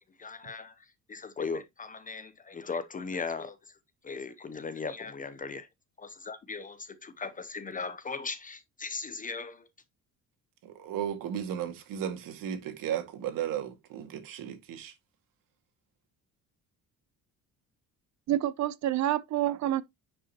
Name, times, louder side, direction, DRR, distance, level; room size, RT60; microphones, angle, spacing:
voice 1, 0.2-3.8 4.0-5.7 6.0-9.7, left 4 dB, 25° left, 0.7 m, -38 dB
voice 2, 10.6-14.9, right 9 dB, 85° right, 2.0 m, -35 dB
voice 3, 18.3-19.8, right 13 dB, 60° right, 0.7 m, -28 dB
9.7 x 5.5 x 2.9 m
cardioid pair, 145°, 33 cm